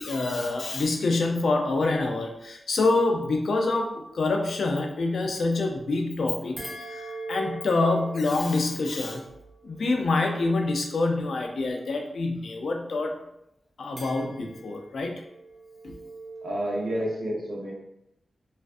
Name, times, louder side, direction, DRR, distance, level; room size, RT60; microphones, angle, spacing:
voice 1, 0.0-6.6 6.9-9.2 9.6-13.2 13.8-15.2 15.8-16.0, left 3 dB, 70° left, 3 dB, 0.4 m, -26 dB
sound 1, 6.6-11.0 14.0-16.5, right 2 dB, 20° right, 0.8 m, -42 dB
voice 2, 16.4-17.7, right 1 dB, 75° right, -4 dB, 0.8 m, -29 dB
2.4 x 2.3 x 2.4 m, 0.81 s
wide cardioid pair, 110°, 0 cm